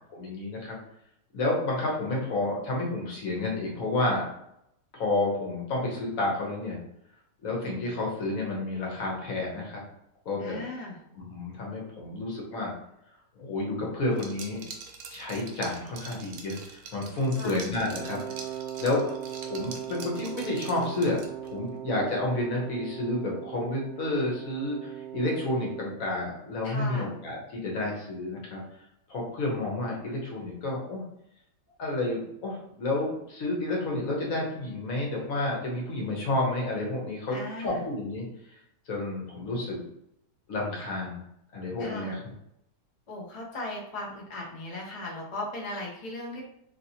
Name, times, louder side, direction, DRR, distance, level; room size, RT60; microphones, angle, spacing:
voice 1, 0.1-0.8 1.3-4.2 4.9-6.8 7.4-9.8 10.2-10.6 11.1-12.7 13.4-14.6 15.1-18.2 18.8-19.0 19.4-21.2 21.4-28.6 29.1-31.0 31.8-38.2 38.5-38.6 38.9-39.8 40.5-41.2 41.5-42.3, left 2 dB, 60° left, -2 dB, 1.2 m, -30 dB
voice 2, 10.4-11.0 17.4-17.6 26.6-27.1 37.3-37.8 41.8-42.2 43.1-46.4, left 1 dB, 75° left, -2 dB, 0.3 m, -37 dB
Liquid, 14.1-21.5, right 5 dB, 75° right, 1.1 m, -44 dB
Wind instrument woodwind instrument, 17.9-26.0, right 10 dB, 55° right, 0.9 m, -39 dB
2.9 x 2.9 x 2.7 m, 0.79 s
omnidirectional pair, 1.8 m